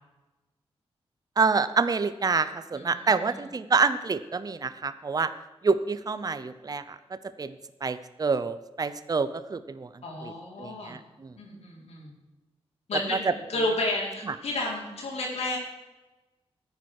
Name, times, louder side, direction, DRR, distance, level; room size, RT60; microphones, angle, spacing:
voice 1, 1.4-5.3 5.6-7.6 7.8-9.9 10.2-10.3 10.6-11.3 13.1-13.3 14.3-14.4, right 4 dB, 35° right, 13 dB, 0.7 m, -27 dB
voice 2, 2.7-3.4 10.0-10.9 11.4-12.1 12.9-15.6, left 2 dB, 80° left, -3 dB, 4.5 m, -32 dB
14.0 x 9.9 x 4.8 m, 1.1 s
cardioid pair, 85°, 11 cm